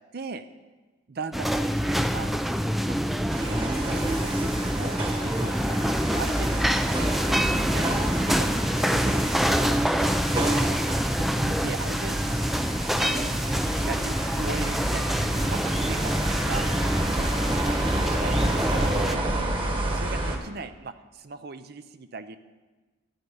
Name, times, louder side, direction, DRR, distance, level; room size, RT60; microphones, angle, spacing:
voice 1, 0.1-0.4 1.1-2.5 2.9-3.0 3.3-6.6 7.2-9.8 11.2-12.5 12.9-15.2 15.5-16.7 17.1-19.5 19.9-22.4, right 4 dB, 55° right, 11 dB, 0.6 m, -39 dB
sound 1, 1.3-19.2, equal, ahead, 0.3 m, -26 dB
sound 2, 3.3-20.4, right 1 dB, 25° right, 1.3 m, -30 dB
12.5 x 9.4 x 5.5 m, 1.3 s
head